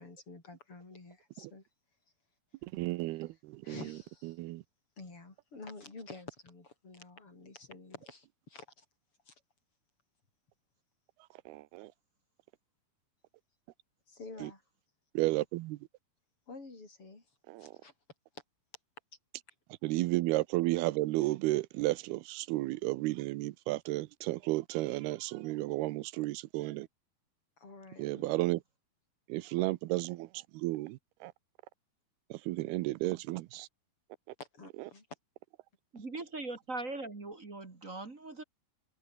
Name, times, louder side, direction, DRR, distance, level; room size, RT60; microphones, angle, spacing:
voice 1, 0.0-1.6 3.6-4.4 5.0-8.9 9.3-9.4 14.1-14.6 16.5-17.3 17.6-17.9 27.6-28.3 34.4-35.1, left 3 dB, 35° left, 7.3 m, -49 dB
voice 2, 2.6-3.8 4.4-4.6 11.5-11.9 14.4-14.5 15.1-15.8 17.5-17.8 19.8-26.9 28.0-28.6 29.3-31.3 32.3-33.7, right 19 dB, 85° right, 2.7 m, -33 dB
voice 3, 35.9-38.4, right 2 dB, 25° right, 2.1 m, -40 dB
omnidirectional pair, 4.4 m